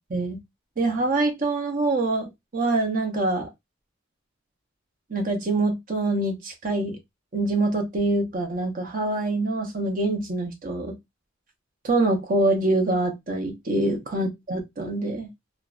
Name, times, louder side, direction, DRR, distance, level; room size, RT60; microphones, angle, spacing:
voice 1, 0.8-3.5 5.1-7.0 7.3-11.0 11.8-15.3, right 2 dB, 40° right, 0.7 m, -25 dB
2.6 x 2.1 x 2.3 m
head